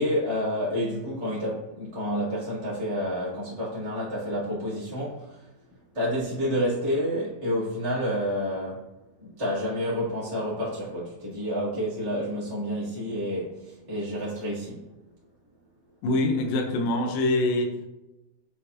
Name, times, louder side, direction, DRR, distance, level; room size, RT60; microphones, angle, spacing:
voice 1, 0.0-5.5 5.9-8.8 9.2-14.8, equal, 10° right, -10 dB, 1.4 m, -29 dB
voice 2, 16.0-17.7, left 2 dB, 75° left, 4 dB, 2.1 m, -24 dB
8.0 x 6.2 x 2.7 m, 0.97 s
omnidirectional pair, 5.0 m